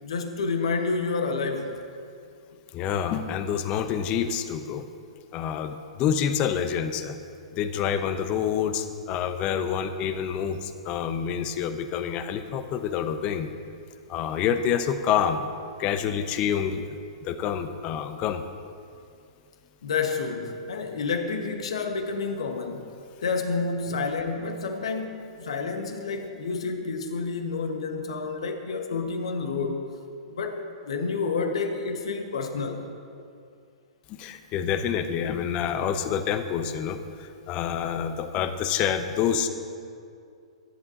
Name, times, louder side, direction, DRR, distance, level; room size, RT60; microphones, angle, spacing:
voice 1, 0.0-1.7 19.8-22.9 23.2-29.8 30.3-32.8, left 4 dB, 65° left, 5 dB, 1.6 m, -29 dB
voice 2, 2.7-4.8 5.3-7.1 7.5-13.5 14.1-15.5 15.8-16.9 17.2-18.4 23.9-24.0 34.1-39.5, left 8 dB, 35° left, 10 dB, 0.9 m, -27 dB
22.5 x 11.0 x 3.0 m, 2.4 s
figure-of-eight pair, 110°, 3 cm